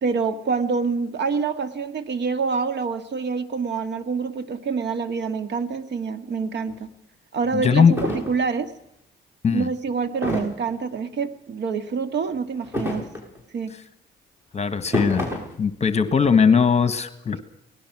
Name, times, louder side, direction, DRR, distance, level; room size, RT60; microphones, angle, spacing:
voice 1, 0.0-6.9 7.3-8.7 9.5-13.1 13.5-13.7, right 5 dB, 60° right, 11 dB, 2.0 m, -26 dB
sound 1, 6.7-6.8 7.4-7.5 7.9-8.4 10.2-10.7 12.6-13.4 14.7-15.6, left 1 dB, 10° right, 7.0 m, -28 dB
voice 2, 7.5-7.9 9.4-9.7 14.5-15.3 15.6-17.4, left 6 dB, 35° left, 12 dB, 1.6 m, -19 dB
24.0 x 18.5 x 6.2 m, 0.77 s
cardioid pair, 90°, 20 cm